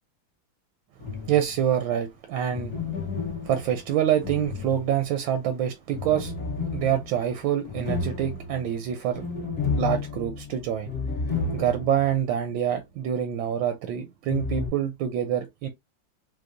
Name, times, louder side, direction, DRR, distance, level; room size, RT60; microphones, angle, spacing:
sound 1, 1.0-1.7 2.5-5.3 5.9-12.1 12.4-12.5 14.3-14.7, left 4 dB, 50° left, 1.2 m, -32 dB
voice 1, 1.3-2.7 3.4-6.3 6.7-9.2 9.8-10.9 11.2-15.7, right 10 dB, 80° right, 1.3 m, -26 dB
4.6 x 2.0 x 2.5 m
omnidirectional pair, 2.1 m